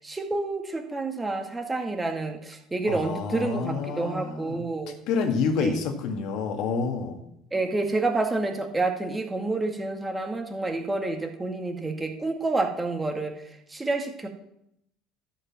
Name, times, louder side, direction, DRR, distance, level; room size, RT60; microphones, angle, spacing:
voice 1, 0.0-5.0 5.6-5.8 7.5-13.3 13.7-14.3, right 2 dB, 15° right, 4 dB, 1.9 m, -29 dB
voice 2, 2.9-4.7 5.1-7.2, left 5 dB, 65° left, 6 dB, 1.7 m, -28 dB
12.0 x 5.1 x 7.5 m, 0.79 s
hypercardioid pair, 70°, 0 cm